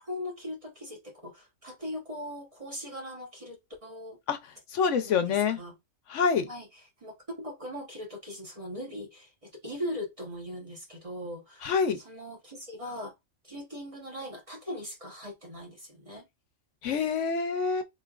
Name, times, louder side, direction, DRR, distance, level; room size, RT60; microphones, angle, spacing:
voice 1, 0.0-4.2 5.0-5.7 6.5-13.1 13.4-16.3, left 1 dB, 30° right, 1.1 m, -40 dB
voice 2, 4.7-5.6 6.1-6.5 11.6-12.0 16.8-17.8, left 6 dB, 70° left, 0.9 m, -26 dB
4.4 x 3.3 x 2.4 m
omnidirectional pair, 1.4 m